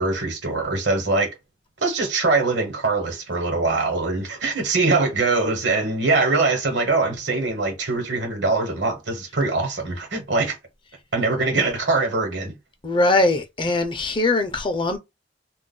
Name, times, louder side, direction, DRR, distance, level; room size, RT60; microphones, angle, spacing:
voice 1, 0.0-1.3 1.8-10.5 11.1-12.5, right 3 dB, 75° right, 1.1 m, -22 dB
voice 2, 12.8-15.0, left 2 dB, 25° left, 0.5 m, -21 dB
2.4 x 2.2 x 3.7 m
head